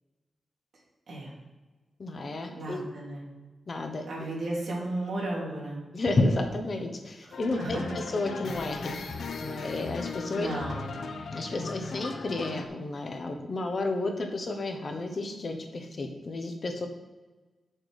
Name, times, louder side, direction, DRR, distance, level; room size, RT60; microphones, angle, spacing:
voice 1, 2.0-2.8 3.7-4.0 5.9-9.0 9.4-10.5 11.3-16.9, left 2 dB, 40° left, 4 dB, 0.9 m, -31 dB
voice 2, 2.5-3.2 4.1-5.8 7.6-8.0 10.3-10.9, right 1 dB, 55° right, -5 dB, 2.9 m, -34 dB
sound 1, 7.3-12.7, left 4 dB, 65° left, 0.7 m, -37 dB
8.0 x 6.6 x 4.9 m, 1.2 s
wide cardioid pair, 170°, 0 cm